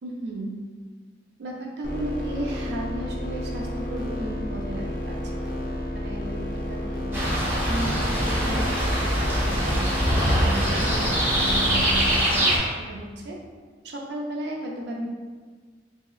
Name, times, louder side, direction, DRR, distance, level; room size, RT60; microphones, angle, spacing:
voice 1, 0.0-0.6 1.4-5.1 5.4-5.6 5.9-6.4 6.7-7.2 7.7-12.6 12.9-13.4 13.8-15.1, right 1 dB, 65° right, -1 dB, 0.5 m, -34 dB
sound 1, 1.8-12.2, left 1 dB, 50° left, 0.4 m, -31 dB
sound 2, 7.1-12.6, equal, 15° right, 0.7 m, -23 dB
2.9 x 2.8 x 2.3 m, 1.5 s
head